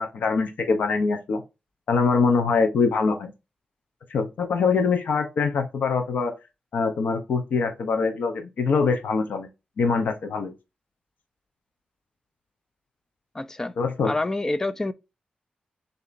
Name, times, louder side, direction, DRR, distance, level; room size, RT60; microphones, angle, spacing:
voice 1, 0.0-1.4 1.9-3.3 4.1-6.3 6.7-9.5 9.8-10.5 13.8-14.1, left 4 dB, 85° left, 0.8 m, -23 dB
voice 2, 13.3-13.7 14.0-14.9, left 2 dB, 20° left, 0.4 m, -27 dB
6.8 x 2.8 x 2.6 m
wide cardioid pair, 120°, 3 cm